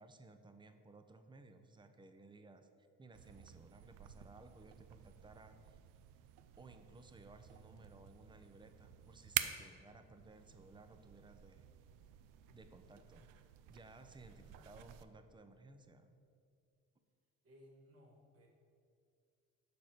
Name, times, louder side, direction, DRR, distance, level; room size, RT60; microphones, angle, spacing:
voice 1, 0.0-2.7 3.0-5.8 6.6-11.7 12.5-13.3 13.7-16.2, right 2 dB, 15° right, 8 dB, 0.5 m, -59 dB
sound 1, 3.1-15.0, right 13 dB, 85° right, 0.5 m, -48 dB
voice 2, 14.3-14.6 17.4-18.5, equal, 45° right, 0 dB, 1.8 m, -63 dB
6.7 x 5.0 x 5.9 m, 2.4 s
cardioid pair, 100°, 32 cm